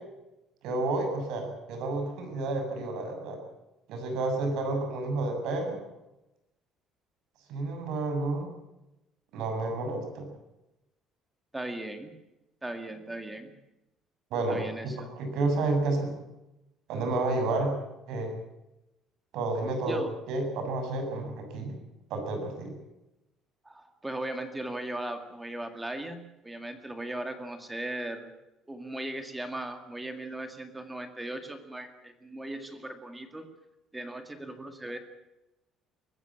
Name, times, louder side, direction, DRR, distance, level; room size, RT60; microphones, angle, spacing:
voice 1, 0.6-3.4 3.9-5.8 7.5-8.5 9.3-10.3 14.3-14.6 14.8-16.1 16.9-17.7 18.1-18.4 19.3-20.0 20.3-21.8 22.1-22.7, right 2 dB, 70° right, 5 dB, 7.2 m, -30 dB
voice 2, 11.5-12.1 12.6-13.5 14.5-15.1 19.8-20.2 23.6-28.3 28.7-33.5 33.9-35.0, right 1 dB, 10° right, 7 dB, 2.0 m, -38 dB
24.5 x 15.0 x 8.8 m, 0.94 s
cardioid pair, 175°, 0 cm